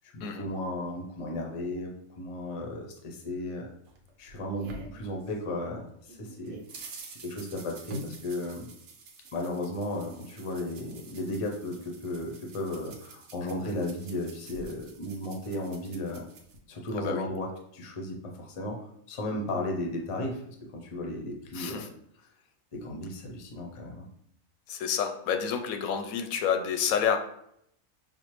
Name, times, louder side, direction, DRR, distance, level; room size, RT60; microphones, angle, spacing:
voice 1, 0.1-3.7 4.2-8.7 9.3-16.2 16.7-18.8 19.1-21.9 22.7-24.1, left 1 dB, 40° left, 1 dB, 0.4 m, -35 dB
sound 1, 3.8-5.7 6.1-16.6, right 2 dB, 75° right, 1.0 m, -47 dB
voice 2, 21.5-21.9 24.7-27.2, left 7 dB, 90° left, 6 dB, 1.0 m, -29 dB
5.5 x 2.0 x 3.1 m, 0.72 s
omnidirectional pair, 1.4 m